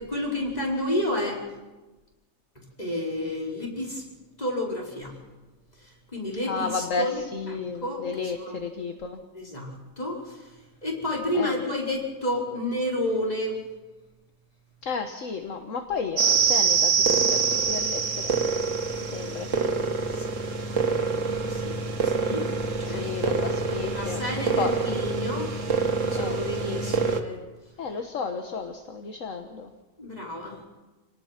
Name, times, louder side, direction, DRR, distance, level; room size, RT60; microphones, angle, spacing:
voice 1, 0.0-1.4 2.8-4.0 4.4-5.2 5.8-7.2 7.5-8.6 9.3-10.6 10.8-13.6 20.1-20.3 21.2-22.5 22.8-23.3 23.9-25.5 26.0-27.4 30.0-30.6, left 1 dB, 25° left, -2 dB, 4.8 m, -31 dB
voice 2, 6.4-9.2 11.3-11.6 14.8-18.3 19.0-19.7 20.8-21.0 22.8-24.7 26.1-26.8 27.8-29.7, left 5 dB, 60° left, 5 dB, 1.6 m, -33 dB
sound 1, 16.2-27.2, right 5 dB, 55° right, 1.8 m, -25 dB
28.0 x 18.5 x 5.9 m, 1.2 s
omnidirectional pair, 1.6 m